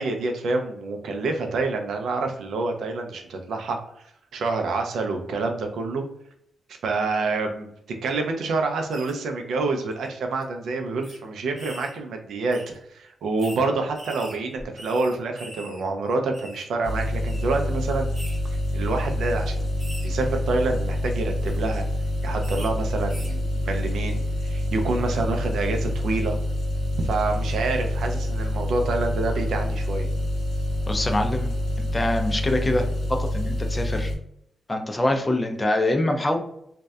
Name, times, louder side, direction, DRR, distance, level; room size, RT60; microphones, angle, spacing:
voice 1, 0.0-3.8 4.3-6.0 6.8-7.7 8.0-12.6 12.9-18.1 18.7-21.8 22.2-26.4 27.0-30.1, right 3 dB, 85° right, 4 dB, 0.4 m, -27 dB
sound 1, 8.9-9.1 9.9-10.1 10.3-10.4 11.0-11.2 11.6-12.0 12.5-12.7 13.4-13.6 13.9-15.8 16.1-16.7 17.2-17.4 18.1-18.4 18.9-19.1 19.8-20.1 21.3-21.6 22.4-22.7 23.1-23.3, equal, 25° right, 1.0 m, -42 dB
sound 2, 16.8-34.1, left 1 dB, 80° left, 0.7 m, -27 dB
voice 2, 30.9-31.5 31.8-34.1 34.7-36.4, left 1 dB, 25° left, 5 dB, 0.4 m, -24 dB
2.6 x 2.1 x 2.2 m, 0.75 s
cardioid pair, 85°, 0 cm